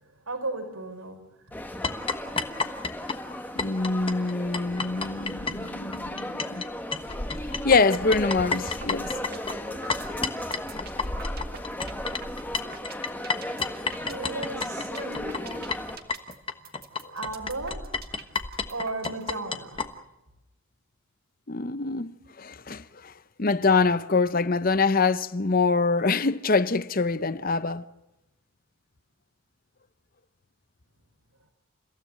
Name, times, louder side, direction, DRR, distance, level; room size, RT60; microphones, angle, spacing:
voice 1, 0.0-1.6 14.0-15.8 17.1-18.2 18.7-19.9, right 2 dB, 85° right, 5.3 m, -36 dB
sound 1, 1.5-16.0, left 1 dB, 10° left, 1.6 m, -36 dB
sound 2, 1.8-6.7 6.9-19.9, left 4 dB, 25° left, 1.2 m, -31 dB
voice 2, 3.6-6.6 7.5-9.1 17.0-17.1 21.5-23.1 23.4-27.8, left 4 dB, 40° left, 0.8 m, -25 dB
sound 3, 8.6-8.9 9.2-19.2, right 5 dB, 45° right, 1.9 m, -43 dB
29.5 x 16.0 x 7.7 m
head